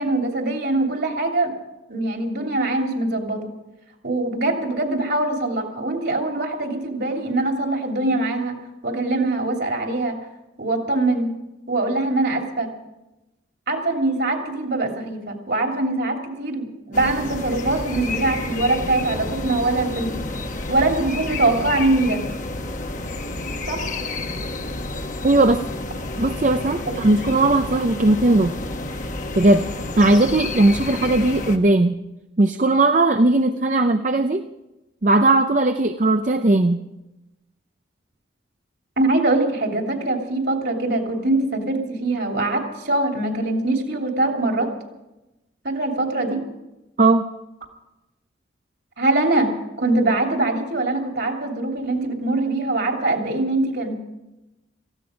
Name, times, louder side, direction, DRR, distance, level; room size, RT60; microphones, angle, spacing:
voice 1, 0.0-1.5 1.9-3.5 4.0-8.6 8.8-10.1 10.6-11.3 11.7-12.7 13.7-20.3 20.7-22.2 23.7-23.9 39.0-44.7 45.6-46.4 49.0-49.5 49.8-54.0, right 2 dB, 60° right, 2 dB, 3.1 m, -23 dB
sound 1, 16.9-31.6, left 2 dB, 40° left, 1.2 m, -30 dB
voice 2, 25.2-25.6 26.2-28.5 29.4-29.6 30.0-32.0 32.4-34.4 35.0-36.8 47.0-47.2, right 2 dB, 40° right, 7 dB, 0.6 m, -18 dB
18.0 x 15.5 x 5.2 m, 0.97 s
head